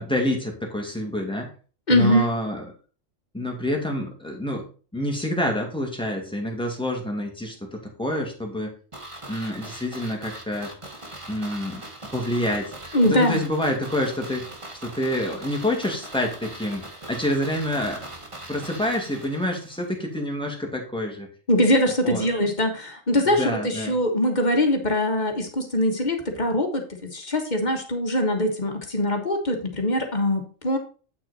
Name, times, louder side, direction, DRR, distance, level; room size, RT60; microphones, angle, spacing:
voice 1, 0.0-1.5 1.9-2.7 3.3-4.7 4.9-8.7 9.3-10.7 11.3-11.8 12.1-12.7 13.1-14.5 14.8-18.0 18.5-21.3 22.0-22.3 23.4-24.0, left 1 dB, 5° left, 0 dB, 2.1 m, -27 dB
voice 2, 1.9-2.3 12.9-13.4 21.5-30.8, left 1 dB, 35° left, 3 dB, 1.7 m, -22 dB
sound 1, 8.9-19.9 20.1-20.2, right 1 dB, 25° right, 1.6 m, -40 dB
8.8 x 6.1 x 4.2 m, 0.37 s
omnidirectional pair, 1.3 m